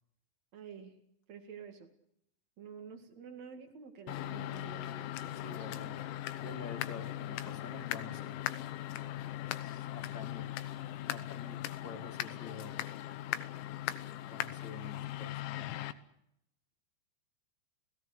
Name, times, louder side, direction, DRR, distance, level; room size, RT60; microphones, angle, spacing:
voice 1, 0.5-1.0 1.3-1.9 2.6-5.8, right 7 dB, 50° right, 5 dB, 2.4 m, -49 dB
sound 1, 4.1-15.9, left 13 dB, 75° left, 3.2 m, -39 dB
voice 2, 5.3-6.0 6.4-8.4 9.6-10.5 11.1-12.8 14.3-15.8, left 3 dB, 30° left, 3 dB, 2.5 m, -49 dB
30.0 x 17.5 x 6.6 m, 0.77 s
omnidirectional pair, 5.5 m